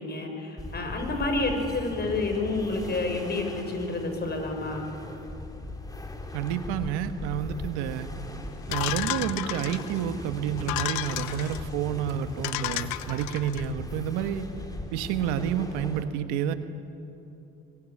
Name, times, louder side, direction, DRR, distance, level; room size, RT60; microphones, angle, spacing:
voice 1, 0.0-4.9, left 2 dB, 35° left, 4 dB, 6.2 m, -29 dB
sound 1, 0.6-16.0, left 1 dB, 10° left, 3.2 m, -39 dB
voice 2, 6.3-8.1 8.7-14.5 14.9-16.5, right 9 dB, 80° right, 9 dB, 1.5 m, -29 dB
sound 2, 8.7-10.0 10.6-11.6 12.1-12.2 12.4-13.6, left 15 dB, 75° left, 1.1 m, -32 dB
24.5 x 21.5 x 8.6 m, 2.8 s
supercardioid pair, 85°, 30 cm